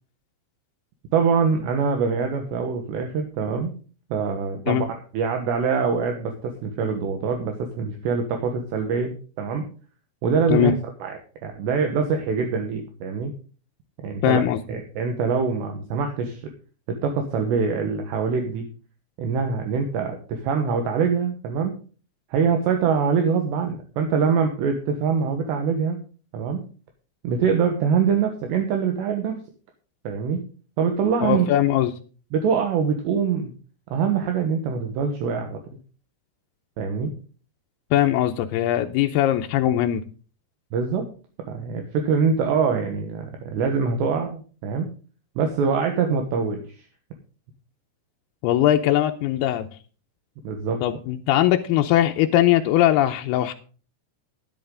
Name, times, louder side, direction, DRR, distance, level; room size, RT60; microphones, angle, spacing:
voice 1, 1.1-3.7 4.1-9.7 10.2-10.7 11.0-13.3 14.0-14.4 14.7-16.5 16.9-18.6 19.2-21.8 22.3-26.0 26.3-26.7 27.2-29.4 30.0-30.5 30.8-31.5 32.3-33.5 33.9-35.6 36.8-37.1 40.7-41.1 41.5-44.9 45.4-46.9 50.4-50.8, right 6 dB, 70° right, 4 dB, 3.4 m, -24 dB
voice 2, 14.2-14.6 31.2-31.9 37.9-40.0 48.4-49.7 50.8-53.5, left 12 dB, 85° left, 5 dB, 2.3 m, -20 dB
12.5 x 11.0 x 3.9 m, 0.39 s
omnidirectional pair, 5.3 m